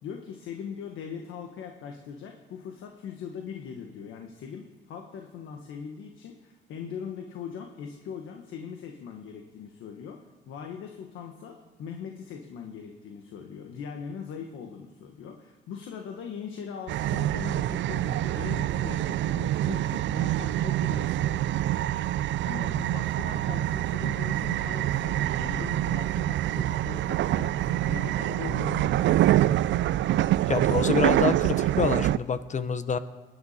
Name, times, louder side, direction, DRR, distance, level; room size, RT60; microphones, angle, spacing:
voice 1, 0.0-10.2 10.5-21.5 22.4-29.6, left 7 dB, 85° left, 3 dB, 1.4 m, -40 dB
sound 1, 16.9-32.2, right 13 dB, 70° right, 0.4 m, -26 dB
voice 2, 30.5-33.0, left 5 dB, 35° left, 12 dB, 0.9 m, -27 dB
21.5 x 10.5 x 4.3 m, 1.2 s
cardioid pair, 90°, 20 cm